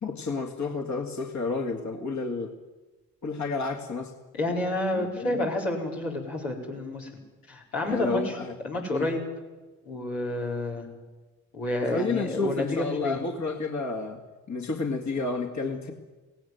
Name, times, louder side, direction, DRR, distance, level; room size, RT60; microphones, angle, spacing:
voice 1, 0.0-2.5 3.2-4.1 4.9-5.4 7.8-8.5 8.9-9.1 11.9-14.2 14.5-15.9, left 3 dB, 40° left, 3 dB, 2.2 m, -30 dB
voice 2, 4.3-7.1 7.5-8.4 8.6-9.2 9.8-10.9 11.5-13.2, left 2 dB, 80° left, -3 dB, 4.5 m, -29 dB
17.5 x 17.0 x 9.3 m, 1.2 s
hypercardioid pair, 40°, 42 cm